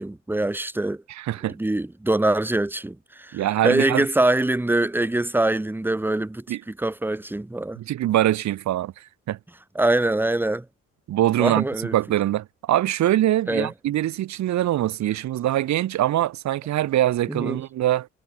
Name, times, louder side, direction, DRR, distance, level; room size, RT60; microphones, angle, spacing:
voice 1, 0.0-1.0 1.6-7.8 9.7-10.6 11.4-11.9 13.5-13.7 17.3-17.6, right 2 dB, 5° right, 0.9 m, -24 dB
voice 2, 1.1-1.5 3.3-4.1 6.5-6.6 7.7-9.4 11.1-11.7 11.9-18.1, right 13 dB, 65° right, 0.9 m, -23 dB
cardioid pair, 90°, 30 cm